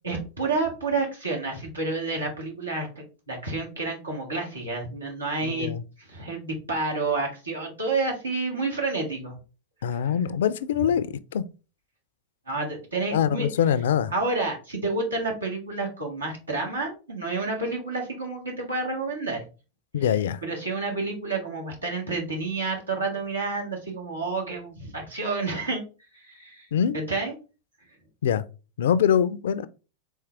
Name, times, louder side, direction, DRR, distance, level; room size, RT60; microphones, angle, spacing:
voice 1, 0.0-5.7 6.0-9.3 9.9-10.1 12.5-13.5 14.1-19.4 20.1-20.2 20.4-25.8 26.1-26.7 26.9-27.3, right 3 dB, 85° right, 1.7 m, -29 dB
voice 2, 5.4-5.8 9.8-11.4 13.1-14.1 19.9-20.4 26.7-27.0 28.2-28.4 28.8-29.7, left 8 dB, 65° left, 0.4 m, -24 dB
4.4 x 3.4 x 3.3 m
figure-of-eight pair, 90°, 0 cm